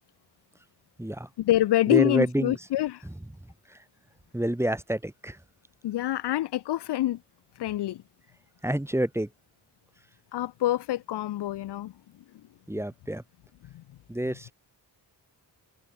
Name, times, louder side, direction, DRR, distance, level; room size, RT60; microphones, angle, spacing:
voice 1, 1.4-3.0 5.8-7.2 7.6-8.0 10.3-11.9 13.7-13.8, left 14 dB, 70° left, 0.6 m, -26 dB
voice 2, 1.9-2.6 4.3-5.4 8.6-9.3 12.7-13.2 14.1-14.5, right 1 dB, 5° right, 1.8 m, -28 dB
cardioid pair, 85°, 42 cm